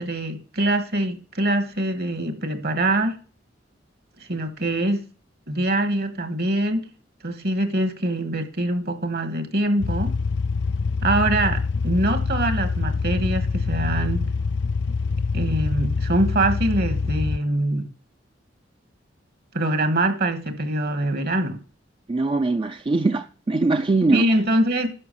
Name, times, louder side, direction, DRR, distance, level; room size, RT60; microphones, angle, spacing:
voice 1, 0.0-3.2 4.2-5.0 5.5-6.9 7.2-10.1 11.0-14.3 15.3-17.9 19.5-21.6 24.1-24.9, right 1 dB, 55° right, 1.7 m, -23 dB
sound 1, 9.8-17.4, left 4 dB, 65° left, 0.4 m, -25 dB
voice 2, 22.1-24.3, right 3 dB, 25° right, 0.4 m, -21 dB
11.0 x 6.0 x 6.9 m
head